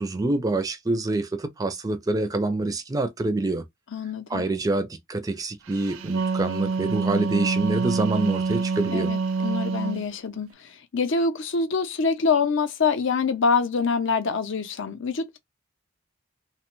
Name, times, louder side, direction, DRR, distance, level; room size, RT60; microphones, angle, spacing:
voice 1, 0.0-3.6 4.3-9.1, right 2 dB, 15° right, 0.4 m, -26 dB
voice 2, 3.9-4.4 8.9-10.5 10.9-15.4, left 5 dB, 60° left, 0.6 m, -25 dB
Wind instrument woodwind instrument, 5.8-10.0, right 4 dB, 75° right, 0.5 m, -26 dB
2.9 x 2.2 x 3.0 m
head